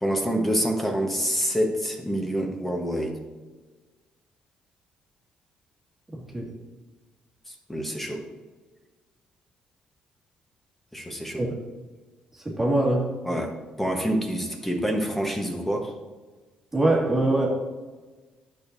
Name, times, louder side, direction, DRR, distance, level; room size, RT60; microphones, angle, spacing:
voice 1, 0.0-3.2 7.7-8.2 10.9-11.4 13.2-15.9, equal, 10° left, 2 dB, 1.2 m, -27 dB
voice 2, 6.1-6.5 11.4-11.6 12.5-13.1 16.7-17.5, right 2 dB, 15° right, -3 dB, 2.0 m, -23 dB
10.5 x 6.5 x 2.7 m, 1.3 s
cardioid pair, 95°, 3 cm